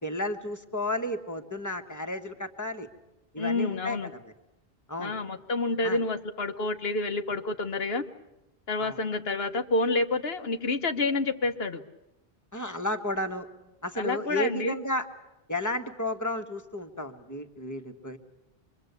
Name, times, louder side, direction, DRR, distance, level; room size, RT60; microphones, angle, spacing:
voice 1, 0.0-2.9 3.3-4.0 4.2-4.3 4.9-5.2 5.8-6.0 8.8-9.0 12.5-13.5 13.8-15.1 15.5-18.2, left 1 dB, 15° left, 6 dB, 1.4 m, -32 dB
voice 2, 3.4-4.1 5.0-8.0 8.7-11.8 13.9-14.8, left 3 dB, 65° left, 7 dB, 1.3 m, -28 dB
25.5 x 23.0 x 8.2 m, 0.94 s
omnidirectional pair, 1.1 m